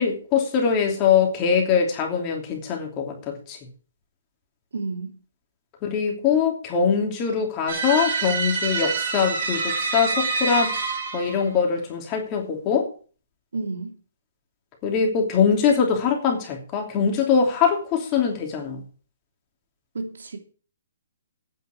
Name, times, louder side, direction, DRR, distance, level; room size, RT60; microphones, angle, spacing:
voice 1, 0.0-3.6 5.8-10.7 11.1-12.9 14.8-18.8, left 6 dB, 25° left, 3.0 m, -22 dB
voice 2, 4.7-5.2 13.5-13.9 19.9-20.4, right 3 dB, 85° right, 2.9 m, -31 dB
sound 1, 7.7-11.4, right 4 dB, 40° right, 6.0 m, -26 dB
9.4 x 7.9 x 8.4 m
hypercardioid pair, 160°, 0 cm